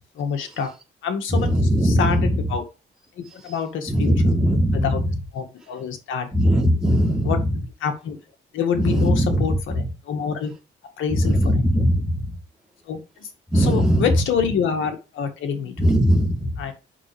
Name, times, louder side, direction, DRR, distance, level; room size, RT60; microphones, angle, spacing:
voice 1, 0.2-0.7 1.0-1.5 1.8-2.6 3.2-4.3 4.7-5.0 5.3-6.3 7.2-7.4 7.8-8.2 8.5-10.5 11.0-11.7 12.9-13.3 13.5-15.9 16.6-16.7, left 7 dB, 80° left, 1.9 m, -26 dB
voice 2, 1.3-2.5 3.5-3.6 3.9-5.2 6.3-7.5 8.8-9.4 9.7-9.8 11.1-12.4 13.5-14.1 15.8-16.7, equal, 5° right, 3.6 m, -20 dB
7.3 x 6.1 x 3.3 m
cardioid pair, 90°, 20 cm